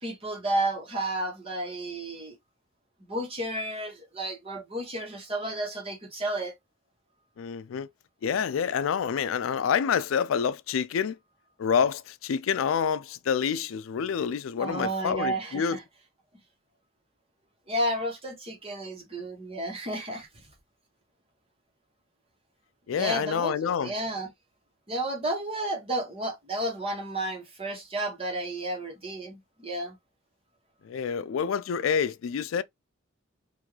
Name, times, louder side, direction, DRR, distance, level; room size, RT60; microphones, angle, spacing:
voice 1, 0.0-2.4 3.1-6.5 14.6-15.8 17.7-20.3 22.9-24.3 24.9-30.0, right 1 dB, 30° right, 1.3 m, -32 dB
voice 2, 7.4-7.9 8.2-11.2 11.6-15.8 22.9-23.9 30.8-32.6, left 7 dB, 90° left, 0.4 m, -27 dB
3.6 x 2.6 x 3.1 m
head